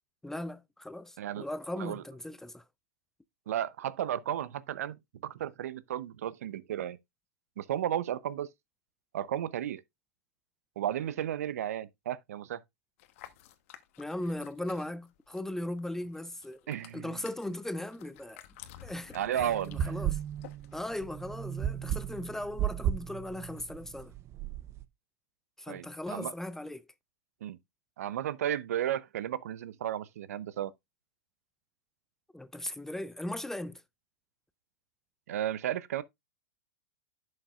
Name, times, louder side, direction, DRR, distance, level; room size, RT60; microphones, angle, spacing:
voice 1, 0.2-2.6 14.0-16.6 16.9-18.4 18.8-20.2 20.7-24.1 25.6-26.8 32.3-33.8, left 1 dB, 5° left, 0.4 m, -38 dB
voice 2, 3.5-7.0 7.6-8.5 9.1-9.8 10.8-12.6 16.7-17.2 19.1-19.9 25.7-26.3 27.4-27.6 28.0-30.7 35.3-36.0, right 11 dB, 70° right, 0.7 m, -34 dB
sound 1, 13.0-15.5 15.8-20.7, left 11 dB, 55° left, 1.1 m, -51 dB
sound 2, 19.4-24.8, right 10 dB, 35° right, 0.7 m, -35 dB
11.0 x 6.5 x 2.4 m
hypercardioid pair, 110°, 8 cm